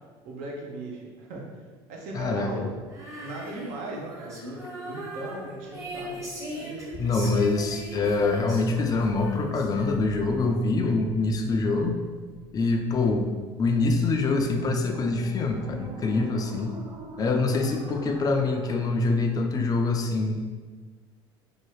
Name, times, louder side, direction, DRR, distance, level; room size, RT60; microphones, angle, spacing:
voice 1, 0.2-1.4 1.9-2.7 3.1-7.0, right 2 dB, 65° right, -1 dB, 0.7 m, -38 dB
voice 2, 2.1-2.5 7.0-11.9 12.5-13.3 13.6-16.7 17.2-20.3, left 3 dB, 30° left, 4 dB, 0.4 m, -25 dB
Female singing, 2.9-10.4, right 1 dB, 20° right, 0.9 m, -39 dB
sound 1, 5.8-19.0, right 3 dB, 40° right, 0.4 m, -46 dB
2.7 x 2.3 x 3.1 m, 1.4 s
hypercardioid pair, 75°, 13 cm